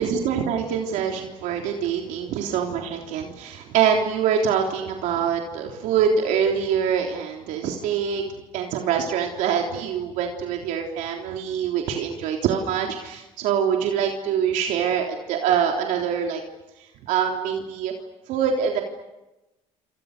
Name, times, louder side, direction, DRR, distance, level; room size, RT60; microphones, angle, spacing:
voice 1, 0.0-8.2 8.5-16.4 17.1-17.9 18.3-18.8, right 7 dB, 80° right, 2 dB, 3.6 m, -24 dB
29.0 x 27.5 x 6.8 m, 0.99 s
cardioid pair, 100°, 13 cm